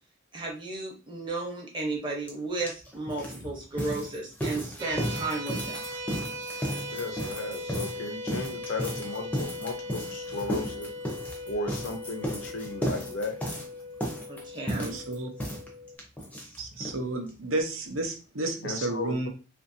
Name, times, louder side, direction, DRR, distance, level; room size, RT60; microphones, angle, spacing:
voice 1, 0.3-5.8 14.3-14.9, right 3 dB, 25° right, -1 dB, 0.8 m, -34 dB
sound 1, 2.3-2.4 2.6-17.0 17.3-17.4 17.6-17.7 18.0-18.1, equal, 5° left, 0.5 m, -34 dB
sound 2, 4.8-16.0, left 1 dB, 55° right, 0.4 m, -39 dB
voice 2, 6.9-10.9 11.4-13.4 18.6-19.3, left 3 dB, 75° left, 4 dB, 0.6 m, -35 dB
voice 3, 14.7-15.3 16.6-19.3, right 2 dB, 90° right, 4 dB, 0.7 m, -32 dB
2.8 x 2.6 x 2.6 m, 0.35 s
head